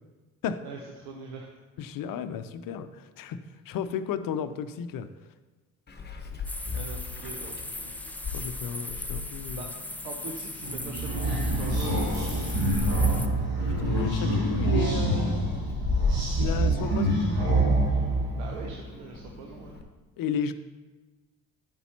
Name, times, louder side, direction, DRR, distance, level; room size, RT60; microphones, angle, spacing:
voice 1, 0.6-1.5 6.7-7.9 9.5-9.7 10.0-13.0 18.4-19.8, right 4 dB, 75° right, 2 dB, 1.0 m, -42 dB
voice 2, 1.8-3.4 3.7-5.1 8.3-9.7 13.8-15.5 16.4-17.2 20.2-20.5, left 7 dB, 50° left, 11 dB, 0.7 m, -33 dB
Meow, 5.9-19.8, left 4 dB, 20° left, 1.1 m, -37 dB
sound 1, 6.4-13.3, left 2 dB, 5° left, 0.4 m, -39 dB
sound 2, 10.6-18.7, right 1 dB, 55° right, 2.9 m, -26 dB
10.5 x 8.1 x 2.9 m, 1.2 s
hypercardioid pair, 55°, 44 cm